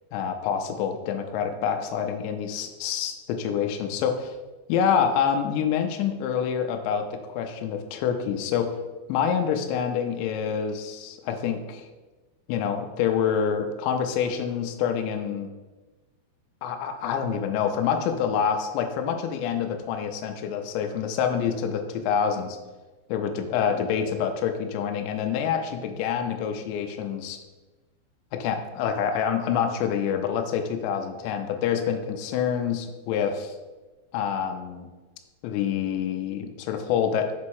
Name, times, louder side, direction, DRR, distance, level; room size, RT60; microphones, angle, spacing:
voice 1, 0.1-4.3 4.7-8.7 9.1-11.9 12.5-15.5 16.6-22.6 23.1-27.4 28.3-33.5 34.1-34.9 35.4-37.3, left 7 dB, 80° left, 5 dB, 2.7 m, -27 dB
6.9 x 4.2 x 4.7 m, 1.2 s
omnidirectional pair, 5.8 m